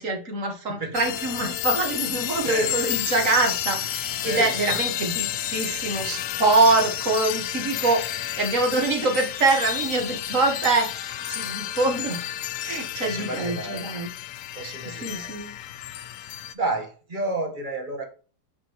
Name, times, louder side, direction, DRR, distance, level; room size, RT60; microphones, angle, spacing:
voice 1, 0.0-5.3 5.5-12.3 12.6-14.1 14.8-15.5, right 3 dB, 45° right, 3 dB, 1.9 m, -24 dB
sound 1, 0.9-16.5, left 12 dB, 85° left, 0.7 m, -31 dB
voice 2, 2.4-2.9 4.2-4.8 13.0-13.9 14.5-15.4 16.5-18.0, right 2 dB, 30° right, 3 dB, 1.2 m, -30 dB
8.4 x 5.6 x 3.0 m, 0.38 s
omnidirectional pair, 2.0 m